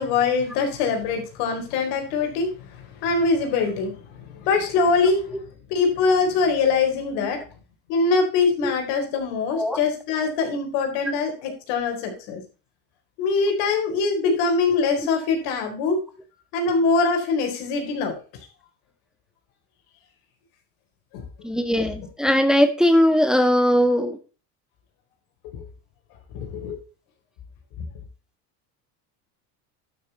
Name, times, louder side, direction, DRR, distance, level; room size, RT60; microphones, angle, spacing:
voice 1, 0.0-5.2 5.7-7.4 7.9-12.4 13.2-16.0 16.5-18.2 21.1-21.2 25.6-25.7 26.3-26.8 27.8-27.9, left 4 dB, 80° left, 4.4 m, -23 dB
voice 2, 21.4-24.2, equal, ahead, 1.5 m, -20 dB
12.0 x 6.8 x 4.2 m
supercardioid pair, 100°, 44 cm